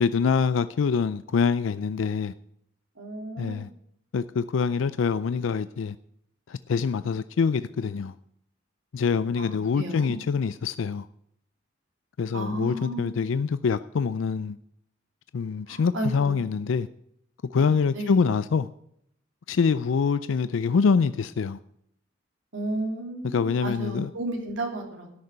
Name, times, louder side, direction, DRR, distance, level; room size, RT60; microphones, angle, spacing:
voice 1, 0.0-2.3 3.4-3.7 4.1-5.9 6.5-8.1 8.9-11.1 12.2-14.6 15.3-16.9 17.5-18.7 19.5-21.6 23.2-24.1, left 5 dB, 80° left, 0.4 m, -25 dB
voice 2, 3.0-3.6 9.4-10.2 12.3-13.1 15.7-16.4 17.6-18.2 22.5-25.2, right 1 dB, 80° right, 3.2 m, -33 dB
13.0 x 6.7 x 8.7 m
head